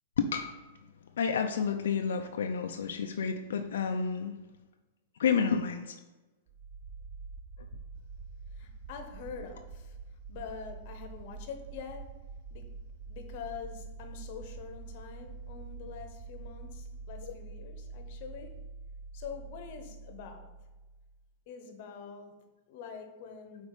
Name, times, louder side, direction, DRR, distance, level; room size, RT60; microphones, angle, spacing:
voice 1, 0.2-0.5 1.2-4.3 5.2-6.0, left 6 dB, 90° left, 0.4 m, -30 dB
sound 1, 6.5-21.3, right 4 dB, 35° right, 0.3 m, -46 dB
voice 2, 8.5-12.7 13.0-18.6 19.1-20.5 21.5-23.7, left 6 dB, 50° left, 0.9 m, -45 dB
5.4 x 4.0 x 4.8 m
supercardioid pair, 150°, 0 cm